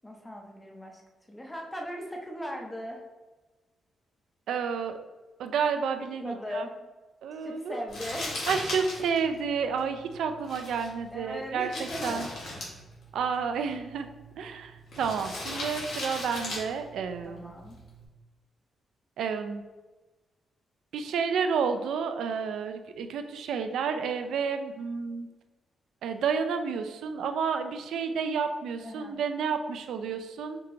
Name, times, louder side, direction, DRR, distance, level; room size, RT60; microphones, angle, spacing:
voice 1, 0.0-1.0 1.3-3.0 6.2-6.9 7.4-8.4 11.1-12.5 17.3-17.8 28.8-29.1, equal, 5° left, 1 dB, 0.5 m, -38 dB
voice 2, 4.5-5.0 5.4-6.7 7.2-7.8 8.5-12.3 13.1-14.1 14.4-17.5 19.2-19.6 20.9-25.3 26.0-30.6, right 6 dB, 80° right, 7 dB, 0.3 m, -30 dB
Crumpling crinkling, 7.9-18.0, left 1 dB, 75° left, 1.2 m, -39 dB
4.6 x 2.8 x 2.5 m, 1.2 s
wide cardioid pair, 175°, 0 cm